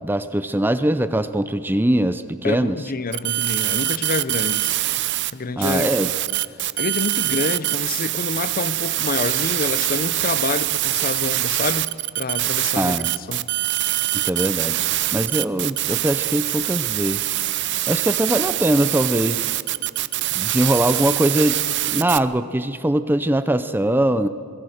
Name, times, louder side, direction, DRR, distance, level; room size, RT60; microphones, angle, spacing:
voice 1, 0.0-2.8 5.6-6.1 12.8-13.2 14.1-14.8 15.1-17.3 17.9-19.5 20.3-21.6 21.9-24.3, right 1 dB, 10° right, 0.6 m, -21 dB
voice 2, 2.4-4.8 5.3-5.9 6.8-13.5, left 3 dB, 40° left, 0.6 m, -27 dB
sound 1, 3.1-5.3 5.6-22.2, right 15 dB, 50° right, 0.6 m, -24 dB
27.0 x 21.5 x 6.5 m
head